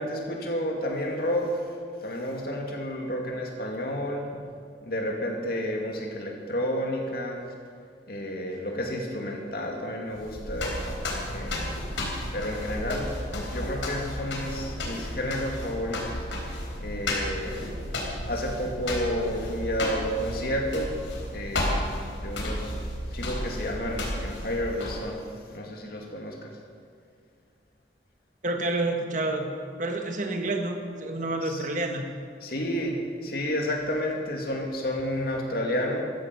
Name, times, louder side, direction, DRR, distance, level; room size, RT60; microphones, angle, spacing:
voice 1, 0.0-1.6 2.0-4.3 4.8-7.5 8.1-10.8 11.3-11.7 12.3-16.3 16.8-17.6 18.2-20.9 21.3-21.8 22.2-22.7 23.1-25.2 25.5-26.5 31.4-31.6 32.4-36.0, equal, 55° left, 0 dB, 2.5 m, -31 dB
sound 1, 10.1-25.2, left 1 dB, 90° left, 3.9 m, -33 dB
voice 2, 28.4-32.1, right 2 dB, 40° right, 4 dB, 1.6 m, -29 dB
14.0 x 14.0 x 6.1 m, 2.3 s
head